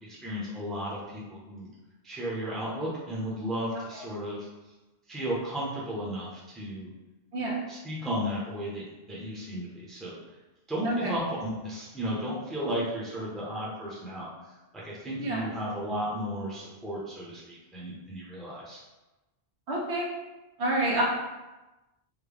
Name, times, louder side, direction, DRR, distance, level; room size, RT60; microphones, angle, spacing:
voice 1, 0.0-1.7 2.0-4.5 5.1-6.9 7.7-10.1 10.7-14.3 14.7-18.8, equal, ahead, -6 dB, 0.6 m, -34 dB
voice 2, 15.2-15.5 19.7-20.1 20.6-21.0, right 1 dB, 80° right, -3 dB, 1.1 m, -28 dB
3.5 x 2.2 x 3.3 m, 1.1 s
omnidirectional pair, 1.1 m